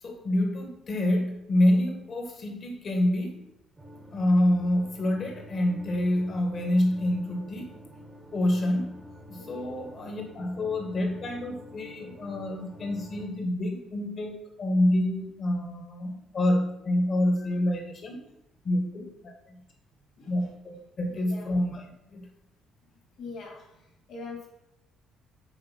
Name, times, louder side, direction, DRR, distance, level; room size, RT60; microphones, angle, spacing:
voice 1, 0.0-3.4 4.1-7.7 8.3-8.9 9.3-18.2 18.6-19.5 20.3-22.3, left 1 dB, 30° left, 3 dB, 1.6 m, -27 dB
sound 1, 3.8-13.3, equal, 10° right, 1.1 m, -48 dB
voice 2, 9.4-9.7 20.2-20.3 21.1-21.5 23.2-23.8 24.1-24.5, left 3 dB, 50° left, 0 dB, 2.8 m, -42 dB
7.9 x 5.2 x 5.7 m, 0.83 s
cardioid pair, 165°, 0 cm